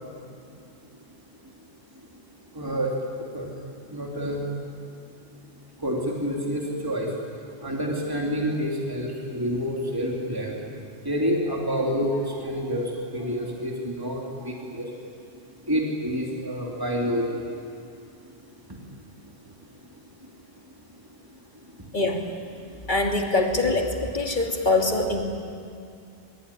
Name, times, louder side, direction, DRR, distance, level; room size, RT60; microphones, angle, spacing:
voice 1, 2.5-4.5 5.8-7.2 7.6-10.7 11.0-15.0 15.6-17.9 18.7-18.8 19.3-19.4 19.8-19.9 20.2-20.3 21.0-21.9, equal, 20° right, -1 dB, 3.0 m, -29 dB
voice 2, 21.9-22.3 22.9-25.2, left 2 dB, 45° left, 2 dB, 2.8 m, -23 dB
23.5 x 22.5 x 9.8 m, 2.4 s
omnidirectional pair, 1.2 m